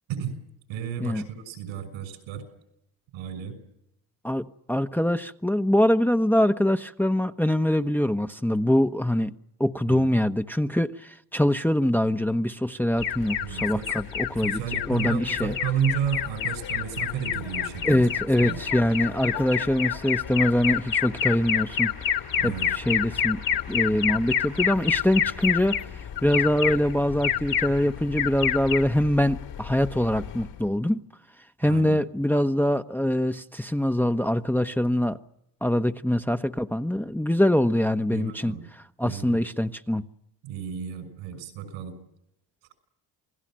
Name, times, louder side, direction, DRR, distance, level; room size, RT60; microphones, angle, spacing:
voice 1, 0.7-2.4 3.1-3.5 9.9-10.1 13.3-13.8 14.4-18.1 18.4-18.6 22.4-22.7 31.6-32.0 38.1-38.6 39.0-39.4 40.4-41.9, right 8 dB, 85° right, 6.5 m, -32 dB
voice 2, 4.2-9.3 9.6-14.6 14.9-15.5 17.8-21.9 22.4-25.9 26.2-31.0 31.6-35.2 35.6-40.0, left 1 dB, 5° left, 1.1 m, -24 dB
Alarm, 13.0-30.6, left 8 dB, 65° left, 3.5 m, -29 dB
28.5 x 19.0 x 7.6 m
supercardioid pair, 55°, 46 cm